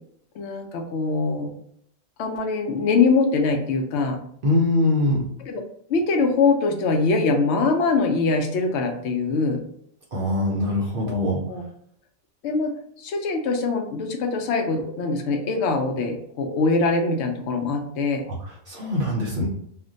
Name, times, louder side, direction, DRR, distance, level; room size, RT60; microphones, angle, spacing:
voice 1, 0.3-1.5 2.2-4.2 5.5-5.6 5.9-9.6 11.1-11.6 12.4-18.2, left 4 dB, 65° left, 3 dB, 0.8 m, -23 dB
voice 2, 4.4-5.3 10.1-11.4 18.3-18.4 18.7-19.5, left 1 dB, 55° right, -3 dB, 0.7 m, -22 dB
2.4 x 2.2 x 3.8 m, 0.69 s
omnidirectional pair, 1.3 m